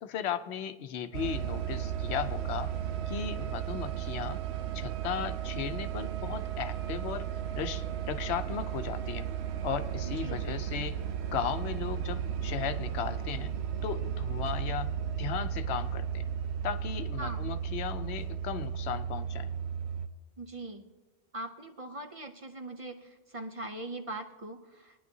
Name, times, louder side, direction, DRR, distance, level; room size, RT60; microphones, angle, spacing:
voice 1, 0.0-2.7 3.1-4.4 4.7-7.3 7.5-9.3 9.6-11.0 11.3-13.5 13.8-16.3 16.6-19.5, left 8 dB, 90° left, 10 dB, 0.9 m, -36 dB
sound 1, 1.1-20.1, right 9 dB, 90° right, 0.9 m, -34 dB
voice 2, 10.0-10.4 17.2-17.4 20.4-20.9 21.3-25.1, right 2 dB, 40° right, 6 dB, 0.6 m, -41 dB
22.0 x 10.0 x 2.7 m, 1.3 s
omnidirectional pair, 1.1 m